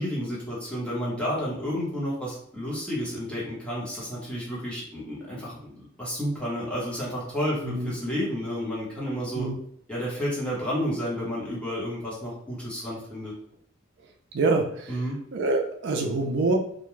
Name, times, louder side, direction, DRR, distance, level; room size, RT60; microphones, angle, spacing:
voice 1, 0.0-9.5 9.9-13.3 14.9-15.2, equal, 5° left, -6 dB, 1.0 m, -31 dB
voice 2, 14.3-14.9 15.3-16.6, right 3 dB, 65° right, 2 dB, 0.4 m, -25 dB
2.4 x 2.2 x 3.0 m, 0.68 s
head